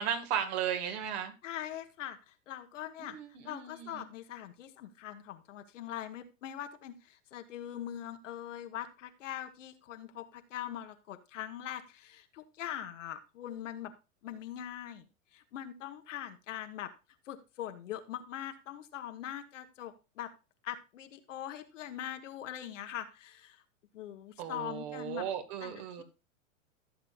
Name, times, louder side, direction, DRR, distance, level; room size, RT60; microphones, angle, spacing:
voice 1, 0.0-1.3 3.0-4.1 24.4-26.0, right 9 dB, 55° right, 7 dB, 2.0 m, -35 dB
voice 2, 1.4-3.2 3.4-13.9 14.2-16.9 17.3-20.3 20.6-23.6 23.9-25.3 25.6-26.0, left 11 dB, 70° left, 7 dB, 1.5 m, -42 dB
14.5 x 7.4 x 2.5 m, 0.28 s
hypercardioid pair, 110°, 38 cm